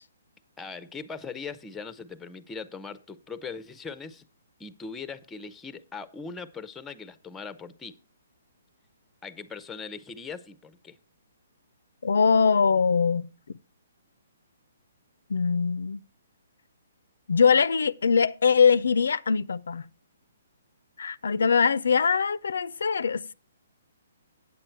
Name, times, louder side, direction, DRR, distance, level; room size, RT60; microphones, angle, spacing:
voice 1, 0.6-4.2 4.6-8.0 9.2-11.0, left 5 dB, 10° left, 0.5 m, -40 dB
voice 2, 12.0-13.3 15.3-16.0 17.3-19.9 21.0-23.3, left 5 dB, 80° left, 0.3 m, -22 dB
8.5 x 7.7 x 4.4 m
hypercardioid pair, 150°, 0 cm